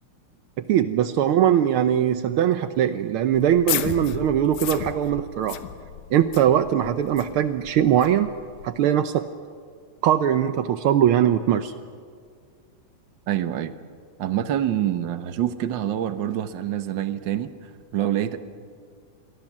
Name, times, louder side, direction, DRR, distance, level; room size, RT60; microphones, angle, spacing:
voice 1, 0.6-5.6 6.1-8.3 8.6-9.2 10.0-11.7, right 10 dB, 80° right, 10 dB, 1.2 m, -21 dB
sound 1, 3.3-8.7, left 11 dB, 90° left, 2.4 m, -34 dB
voice 2, 13.3-13.7 14.2-18.4, right 11 dB, 60° right, 10 dB, 1.2 m, -26 dB
28.0 x 22.5 x 7.4 m, 2.1 s
omnidirectional pair, 3.3 m